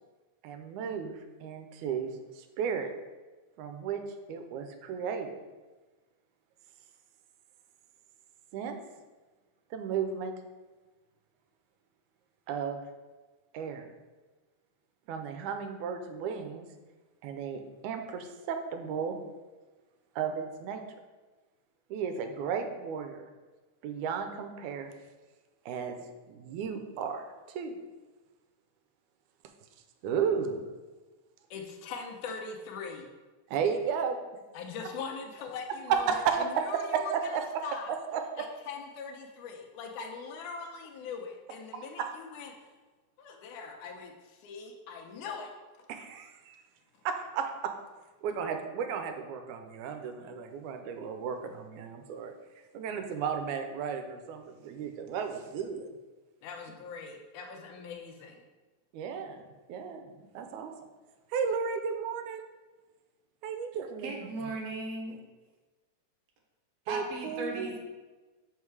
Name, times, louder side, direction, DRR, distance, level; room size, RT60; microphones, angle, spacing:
voice 1, 0.4-2.9 3.6-4.0 4.3-5.4 8.5-8.8 9.7-10.3 12.5-12.8 13.5-13.9 15.1-16.7 17.2-19.2 20.2-20.8 21.9-23.2 23.8-24.9 25.7-26.0 26.3-27.8 30.0-30.7 33.5-34.2 35.9-37.4 38.1-38.2 42.0-42.1 45.9-46.6 47.1-47.7 48.2-52.3 52.7-55.9 58.9-60.7 61.3-62.5 63.4-64.1 66.9-67.8, right 6 dB, 85° right, 6 dB, 2.1 m, -34 dB
voice 2, 31.5-33.1 34.5-37.1 37.6-37.9 38.4-42.6 43.2-45.5 56.4-58.4, left 5 dB, 90° left, 3 dB, 2.4 m, -41 dB
voice 3, 64.0-65.2 66.9-67.8, right 2 dB, 65° right, 0 dB, 2.1 m, -37 dB
5.6 x 5.3 x 4.7 m, 1.2 s
omnidirectional pair, 3.4 m